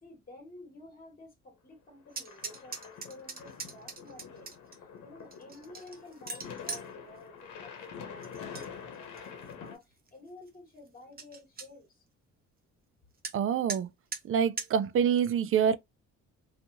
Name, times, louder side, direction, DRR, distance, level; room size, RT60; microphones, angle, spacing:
voice 1, 0.0-12.0, left 2 dB, 30° left, 1.5 m, -51 dB
sound 1, 2.1-9.8, left 6 dB, 85° left, 0.9 m, -46 dB
sound 2, 2.1-4.8 5.3-6.9 8.2-8.7 9.0-9.5 10.1-10.2 10.5-10.6 10.9-11.0 11.2-11.7 13.2-13.4 13.7-13.8 14.1-14.2 14.6-14.7, right 4 dB, 30° right, 0.8 m, -40 dB
voice 2, 13.3-13.9 14.2-15.8, right 8 dB, 45° right, 0.4 m, -26 dB
2.7 x 2.5 x 2.5 m
cardioid pair, 90°, 30 cm